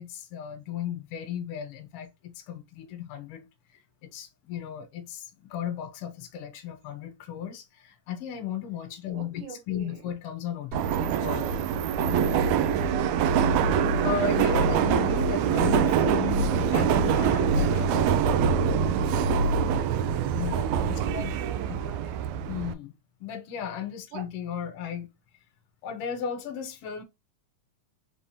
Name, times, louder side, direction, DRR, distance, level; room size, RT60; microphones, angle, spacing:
voice 1, 0.0-3.5 3.7-10.8 11.2-11.5 14.0-18.2 20.3-21.3 21.7-21.8 22.5-22.9 23.2-25.1 25.8-27.0, left 8 dB, 70° left, 1.5 m, -35 dB
voice 2, 9.1-10.1 10.8-11.5 12.5-14.0 20.2-22.3 24.1-24.2, right 8 dB, 70° right, 2.4 m, -43 dB
Subway metro underground, 10.7-22.7, right 6 dB, 90° right, 1.6 m, -24 dB
5.6 x 3.3 x 2.7 m
omnidirectional pair, 3.9 m